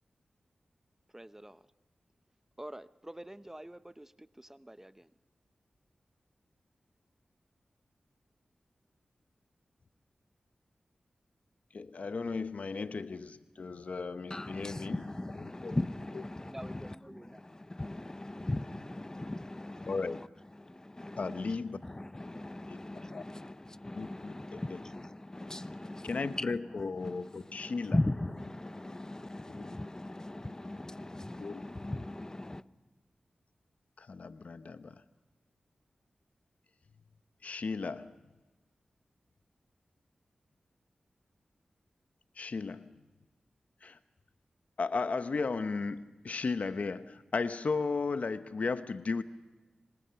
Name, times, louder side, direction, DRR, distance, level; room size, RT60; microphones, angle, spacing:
voice 1, 1.1-1.6 2.6-5.1 16.5-17.4, right 1 dB, 15° right, 0.8 m, -48 dB
voice 2, 11.7-15.0 15.6-15.8 19.9-20.2 21.2-21.8 22.7-22.8 23.1-23.2 23.9-24.6 26.0-28.0 29.5-29.7 31.4-31.6 34.0-35.0 37.4-38.1 42.4-42.9 43.8-44.0 44.8-49.2, left 4 dB, 65° left, 0.9 m, -35 dB
voice 3, 14.3-20.3 20.8-32.6, left 1 dB, 25° left, 0.9 m, -39 dB
26.5 x 25.5 x 5.8 m
cardioid pair, 40°, 3 cm